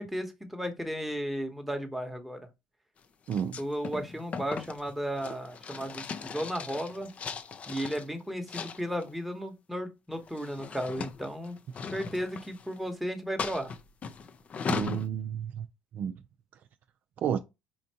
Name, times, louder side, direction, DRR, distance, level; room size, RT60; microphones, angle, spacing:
voice 1, 0.0-2.4 3.6-7.1 7.7-11.6 11.9-13.7, equal, ahead, 0.9 m, -34 dB
sound 1, 3.3-8.1 8.5-9.1 10.1-12.9 13.4-15.1, left 5 dB, 35° left, 0.4 m, -38 dB
voice 2, 3.3-3.6 14.7-15.7 15.9-16.2 17.2-17.4, right 8 dB, 50° right, 0.4 m, -31 dB
4.3 x 2.6 x 2.7 m
cardioid pair, 105°, 4 cm